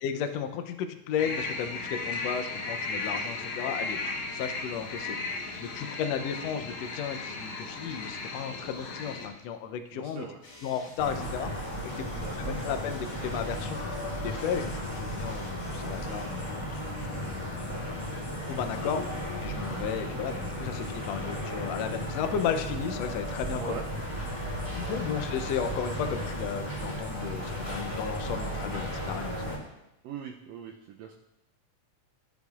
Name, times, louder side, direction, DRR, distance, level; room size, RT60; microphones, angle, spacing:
voice 1, 0.0-4.0 4.3-10.3 10.6-17.8 18.5-23.8 24.7-29.4, left 7 dB, 80° left, 7 dB, 1.5 m, -34 dB
sound 1, 1.2-9.3, left 3 dB, 60° left, 1.8 m, -35 dB
voice 2, 9.9-10.4 12.1-12.6 23.5-23.9 24.8-25.0 30.0-31.1, right 7 dB, 85° right, 1 dB, 1.5 m, -41 dB
sound 2, 10.4-16.4, left 2 dB, 40° left, 2.8 m, -52 dB
sound 3, 11.0-29.6, equal, 15° left, 2.5 m, -35 dB
14.5 x 8.0 x 2.4 m, 0.88 s
omnidirectional pair, 3.7 m